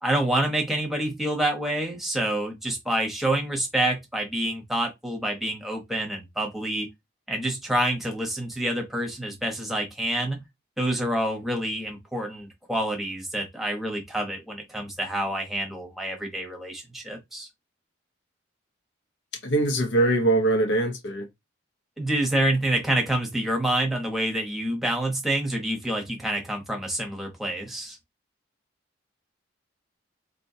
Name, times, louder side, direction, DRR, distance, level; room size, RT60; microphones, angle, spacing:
voice 1, 0.0-6.9 7.3-10.4 10.8-17.5 22.0-28.0, right 1 dB, ahead, 0.9 m, -27 dB
voice 2, 19.4-21.3, right 2 dB, 65° left, 0.8 m, -22 dB
4.1 x 3.0 x 2.7 m
head